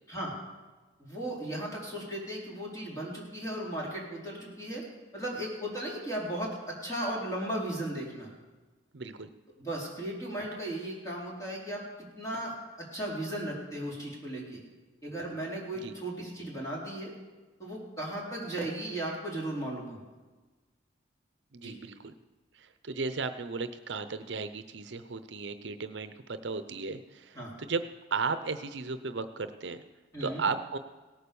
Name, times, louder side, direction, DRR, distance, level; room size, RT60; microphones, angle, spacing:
voice 1, 1.0-4.8 5.1-8.3 9.6-11.9 12.2-14.6 15.0-17.1 17.6-20.0 21.6-21.8 27.3-27.5 30.1-30.4, right 1 dB, 15° left, -4 dB, 4.0 m, -36 dB
voice 2, 8.9-9.3 15.8-15.9 21.5-22.1 22.5-27.8 28.1-29.8 30.2-30.8, right 4 dB, 65° right, 11 dB, 0.7 m, -35 dB
18.0 x 9.1 x 7.0 m, 1.3 s
head